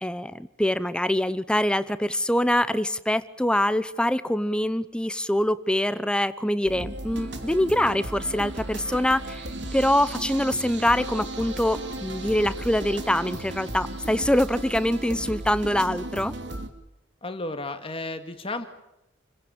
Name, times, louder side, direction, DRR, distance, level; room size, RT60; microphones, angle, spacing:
voice 1, 0.0-9.4 9.7-16.3, left 1 dB, 5° left, 14 dB, 0.8 m, -24 dB
sound 1, 6.7-16.7, right 1 dB, 65° right, 2.8 m, -35 dB
voice 2, 17.2-18.7, left 2 dB, 30° left, 8 dB, 2.1 m, -33 dB
29.0 x 16.5 x 8.9 m, 0.90 s
head